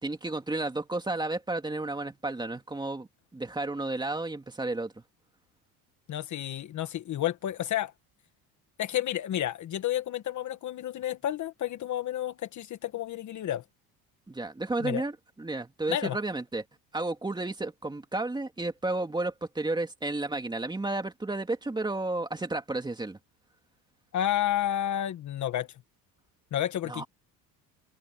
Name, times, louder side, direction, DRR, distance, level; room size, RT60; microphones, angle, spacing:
voice 1, 0.0-5.0 14.3-16.6 16.9-23.2 26.8-27.1, right 2 dB, 10° right, 2.4 m, -32 dB
voice 2, 6.1-7.9 8.8-13.6 14.8-15.0 15.9-16.2 24.1-25.7 26.5-27.0, left 11 dB, 45° left, 1.4 m, -31 dB
cardioid pair, 120°, 39 cm